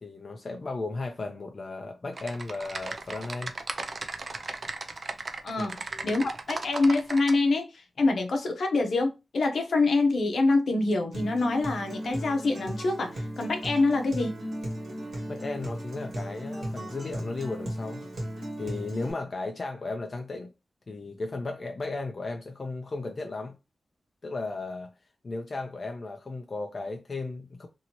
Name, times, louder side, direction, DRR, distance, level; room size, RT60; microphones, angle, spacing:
voice 1, 0.0-3.5 5.6-6.3 15.3-18.1 18.4-20.5 20.9-23.6 24.2-24.9 25.2-27.7, left 3 dB, 35° left, 0.4 m, -35 dB
Typing, 2.1-7.4, right 3 dB, 40° right, 0.4 m, -36 dB
voice 2, 5.4-14.4, left 3 dB, 65° left, 0.7 m, -26 dB
Acoustic guitar, 11.1-19.1, equal, 70° right, 1.4 m, -36 dB
2.7 x 2.6 x 2.9 m
wide cardioid pair, 160°, 0 cm